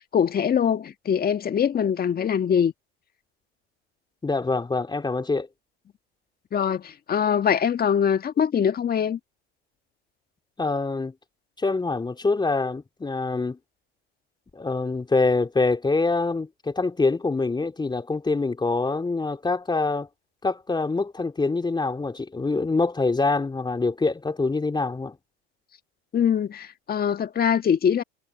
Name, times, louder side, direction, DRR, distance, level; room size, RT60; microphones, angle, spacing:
voice 1, 0.0-2.7 6.5-9.2 26.1-28.0, left 8 dB, 30° left, 1.8 m, -23 dB
voice 2, 4.2-5.5 10.6-11.1 11.6-13.6 14.5-20.1 20.4-25.1, left 3 dB, 15° left, 3.2 m, -25 dB
hypercardioid pair, 95°, 31 cm